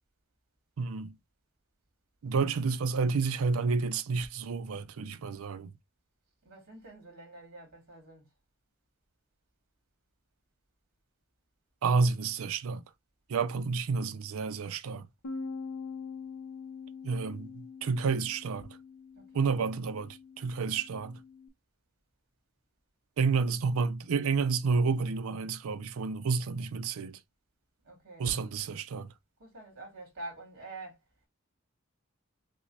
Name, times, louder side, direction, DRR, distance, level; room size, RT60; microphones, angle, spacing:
voice 1, 0.8-1.1 2.2-5.7 11.8-12.8 13.3-15.1 17.0-18.7 19.3-21.2 23.2-27.2 28.2-29.1, right 4 dB, 75° right, 0.4 m, -30 dB
voice 2, 6.4-8.3 19.1-19.6 27.8-28.5 29.4-31.0, right 2 dB, 45° right, 2.4 m, -47 dB
Bass guitar, 15.2-21.5, left 4 dB, 75° left, 0.5 m, -44 dB
6.0 x 2.1 x 2.6 m
head